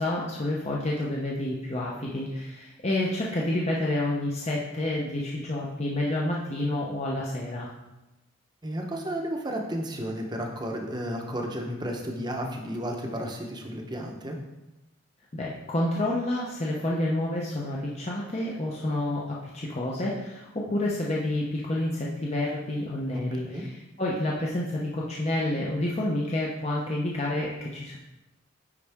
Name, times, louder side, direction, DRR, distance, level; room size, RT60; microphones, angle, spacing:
voice 1, 0.0-7.7 15.3-28.0, left 1 dB, 30° left, -4 dB, 0.7 m, -29 dB
voice 2, 8.6-14.4 23.1-23.6, equal, 20° right, 1 dB, 0.9 m, -33 dB
9.7 x 4.1 x 3.5 m, 0.98 s
head